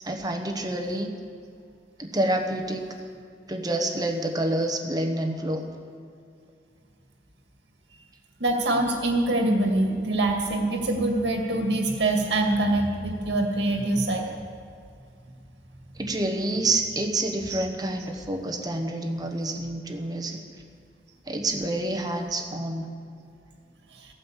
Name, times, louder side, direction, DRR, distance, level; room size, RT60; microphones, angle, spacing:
voice 1, 0.0-1.1 2.0-2.8 3.5-5.6 16.0-20.4 21.3-22.9, right 1 dB, 20° right, 4 dB, 1.2 m, -28 dB
voice 2, 8.4-14.2 17.5-17.6, right 2 dB, 85° right, 2 dB, 2.2 m, -24 dB
15.0 x 9.1 x 7.4 m, 2.4 s
head